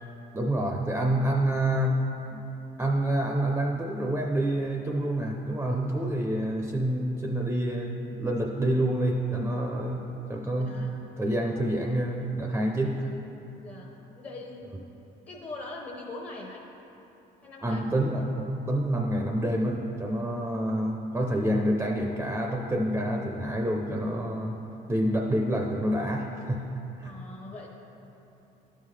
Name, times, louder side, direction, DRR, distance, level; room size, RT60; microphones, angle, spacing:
voice 1, 0.3-2.1 2.3-2.4 2.8-10.9 11.2-13.1 17.6-24.6 24.9-26.6 27.0-27.1, right 1 dB, 15° right, 1 dB, 0.5 m, -27 dB
voice 2, 10.5-11.0 13.6-14.8 15.3-16.6 17.4-17.9 27.0-27.7, left 2 dB, 35° left, -2 dB, 0.9 m, -42 dB
11.5 x 5.6 x 3.2 m, 3.0 s
cardioid pair, 110°, 17 cm